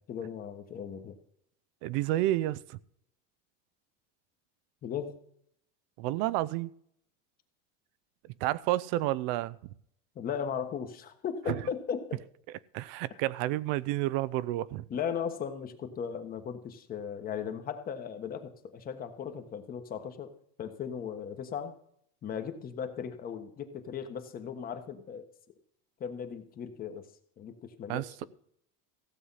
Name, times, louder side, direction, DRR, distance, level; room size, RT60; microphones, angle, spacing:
voice 1, 0.1-1.1 4.8-5.2 10.1-12.2 14.9-20.3 20.6-21.8 22.2-25.3 26.0-27.0 27.4-28.1, left 7 dB, 30° left, 1.4 m, -37 dB
voice 2, 1.8-2.8 6.0-6.7 8.4-9.6 11.5-11.6 12.7-14.8 27.9-28.2, right 16 dB, 65° right, 0.6 m, -30 dB
15.5 x 7.9 x 5.7 m
cardioid pair, 155°, 30 cm